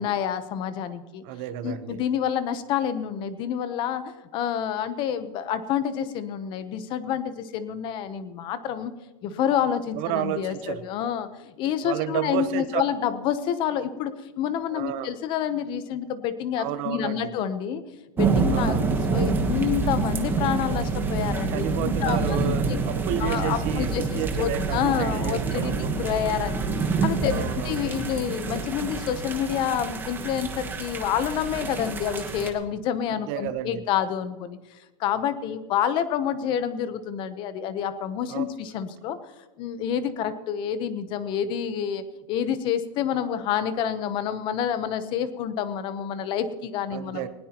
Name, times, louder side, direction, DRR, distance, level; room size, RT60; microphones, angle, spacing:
voice 1, 0.0-1.2 1.6-8.9 9.2-11.3 11.6-17.8 18.2-18.8 19.1-22.8 23.2-34.6 35.0-39.2 39.6-47.3, left 9 dB, 25° left, 12 dB, 0.9 m, -28 dB
voice 2, 1.2-2.0 9.9-10.8 11.8-12.8 14.7-15.1 16.6-17.3 18.5-18.9 21.5-25.9 27.3-28.0 33.1-33.8 38.3-38.5 46.9-47.3, right 12 dB, 35° right, 11 dB, 1.0 m, -31 dB
sound 1, 18.2-32.5, right 4 dB, 10° right, 1.2 m, -27 dB
20.0 x 17.0 x 3.0 m, 1.1 s
supercardioid pair, 165°, 18 cm